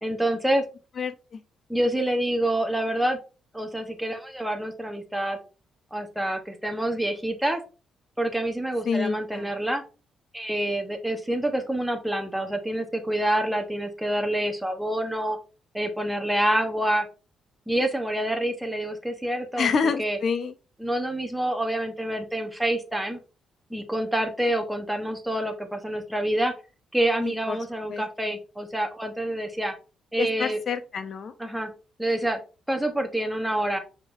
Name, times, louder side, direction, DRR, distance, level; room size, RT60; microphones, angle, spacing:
voice 1, 0.0-0.6 1.7-3.2 3.5-5.4 5.9-7.6 8.2-9.8 10.3-15.4 15.7-17.1 17.7-19.7 20.0-20.2 20.8-23.2 23.7-26.5 26.9-29.7 30.1-30.6 31.4-31.7 32.0-32.4 32.7-33.8, right 1 dB, 5° right, 1.0 m, -27 dB
voice 2, 1.0-1.4 8.8-9.6 19.6-20.5 27.2-27.6 27.9-28.0 28.3-28.4 30.2-31.3, left 5 dB, 50° left, 0.7 m, -28 dB
5.3 x 3.7 x 2.6 m
cardioid pair, 90°, 0 cm